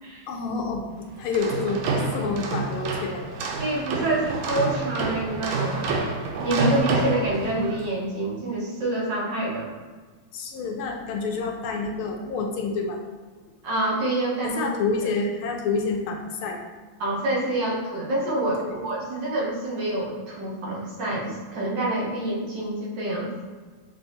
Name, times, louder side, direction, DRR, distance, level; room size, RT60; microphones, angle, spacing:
voice 1, 0.3-1.9 2.1-3.2 10.3-13.0 14.4-16.6 18.6-18.7, left 4 dB, 85° left, 2 dB, 1.5 m, -28 dB
sound 1, 1.2-7.9, right 3 dB, 85° right, 1.4 m, -28 dB
voice 2, 3.6-6.0 6.4-9.7 13.6-14.7 17.0-23.3, right 1 dB, 65° right, -4 dB, 1.4 m, -27 dB
6.2 x 2.3 x 2.7 m, 1.5 s
omnidirectional pair, 2.3 m